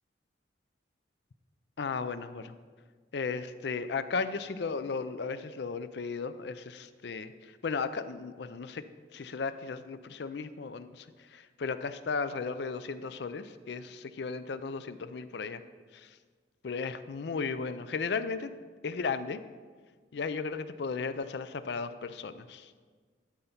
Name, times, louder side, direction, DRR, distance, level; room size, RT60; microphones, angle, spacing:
voice 1, 1.8-2.5 3.1-8.8 9.1-11.1 11.3-15.6 15.9-16.1 16.6-18.5 18.8-19.4 20.1-22.7, left 4 dB, 65° left, 12 dB, 0.4 m, -35 dB
12.5 x 4.4 x 5.6 m, 1.5 s
head